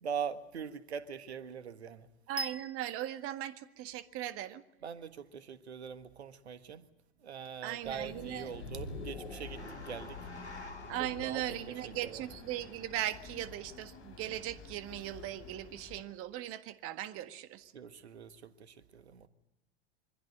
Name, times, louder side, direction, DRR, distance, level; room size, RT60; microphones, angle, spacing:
voice 1, 0.0-2.1 4.8-6.8 7.2-10.2 11.0-11.4 11.8-12.2 17.7-19.3, right 7 dB, 75° right, 1.6 m, -42 dB
voice 2, 2.3-4.6 7.6-8.5 10.9-17.7, right 13 dB, 45° right, 1.7 m, -38 dB
sound 1, 2.4-4.4, right 2 dB, 5° right, 0.8 m, -43 dB
sound 2, 7.8-16.0, left 4 dB, 40° left, 5.9 m, -50 dB
sound 3, 8.5-12.9, left 3 dB, 90° left, 2.6 m, -46 dB
24.5 x 15.5 x 9.0 m
figure-of-eight pair, 85°, 33 cm